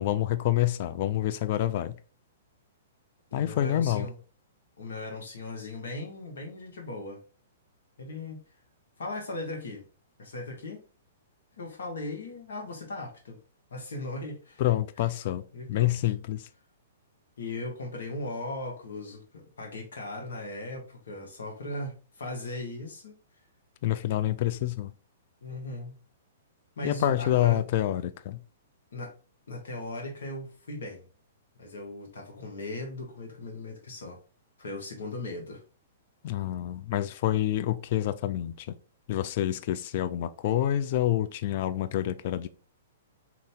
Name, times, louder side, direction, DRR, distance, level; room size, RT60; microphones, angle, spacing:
voice 1, 0.0-1.9 3.3-4.1 14.6-15.4 15.7-16.5 23.8-24.9 26.8-28.4 36.2-38.7 39.1-42.5, left 13 dB, 50° left, 0.3 m, -27 dB
voice 2, 3.3-4.1 4.8-7.2 8.0-8.4 9.0-9.8 10.2-10.8 11.6-13.4 13.7-14.6 15.5-16.0 17.4-23.2 25.4-26.0 26.8-27.6 28.9-29.1 29.5-31.1 31.6-34.2 34.6-35.6, left 2 dB, 75° left, 1.2 m, -38 dB
2.9 x 2.7 x 3.4 m
hypercardioid pair, 125°, 0 cm